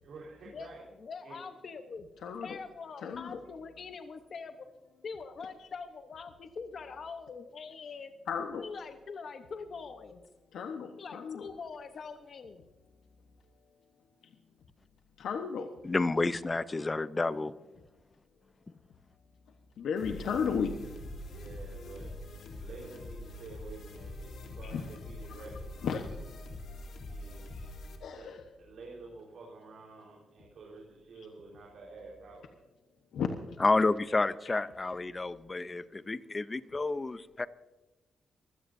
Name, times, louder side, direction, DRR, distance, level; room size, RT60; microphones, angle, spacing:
voice 1, 0.0-0.9 1.2-1.4 2.2-2.3 21.2-22.1 22.6-25.7 26.9-27.5 28.0-28.3 28.6-32.4, right 3 dB, 65° right, -3 dB, 4.3 m, -49 dB
voice 2, 1.0-2.1 2.4-4.7 5.0-8.1 8.5-10.2 11.0-12.7, left 5 dB, 50° left, 7 dB, 0.9 m, -43 dB
voice 3, 3.0-3.4 8.3-8.6 10.5-11.4 15.2-15.7 19.8-20.7 24.6-24.8 25.8-26.3 27.5-27.7 28.0-28.4 33.1-33.6, left 6 dB, 80° left, 5 dB, 1.1 m, -34 dB
voice 4, 15.8-17.5 33.6-37.5, left 3 dB, 25° left, 15 dB, 0.6 m, -30 dB
sound 1, 20.0-28.0, left 1 dB, 65° left, 3.3 m, -44 dB
24.0 x 16.5 x 2.7 m, 1.1 s
cardioid pair, 115°, 0 cm